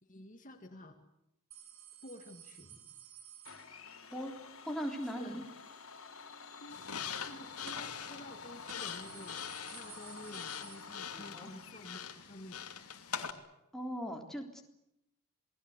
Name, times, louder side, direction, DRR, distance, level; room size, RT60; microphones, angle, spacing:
voice 1, 0.1-1.0 2.0-2.7 4.7-5.5 6.6-6.8 7.2-9.4 9.7-12.6, left 1 dB, 35° left, 5 dB, 2.0 m, -51 dB
sound 1, 1.5-4.2 7.7-8.1 8.4-8.5 8.7-11.4 11.7-11.8 12.9-13.0, right 8 dB, 65° right, 3.6 m, -54 dB
Domestic sounds home sounds, 3.4-12.1, left 5 dB, 65° left, 3.3 m, -51 dB
voice 2, 4.7-5.4 11.1-11.5 13.7-14.6, equal, ahead, 1 dB, 3.6 m, -39 dB
sound 2, 6.7-13.3, left 7 dB, 85° left, 2.7 m, -43 dB
28.0 x 20.0 x 8.1 m, 0.83 s
head